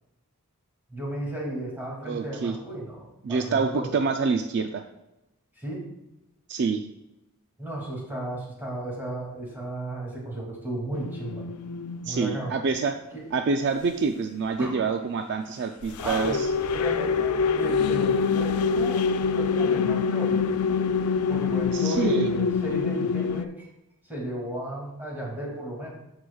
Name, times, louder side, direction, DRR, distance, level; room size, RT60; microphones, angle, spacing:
voice 1, 0.9-3.9 5.5-5.8 7.6-11.4 12.0-12.5 13.1-13.2 14.6-14.7 16.0-16.4 16.7-20.4 21.3-23.7 24.1-25.9, right 1 dB, 10° right, -4 dB, 2.3 m, -34 dB
voice 2, 2.0-2.5 3.2-4.8 6.5-6.8 12.1-13.0 13.3-16.5 21.7-22.3, right 4 dB, 50° right, 6 dB, 0.4 m, -26 dB
sound 1, 10.9-12.8 15.8-23.4, left 5 dB, 80° left, 0.4 m, -25 dB
13.0 x 4.7 x 2.3 m, 0.93 s
head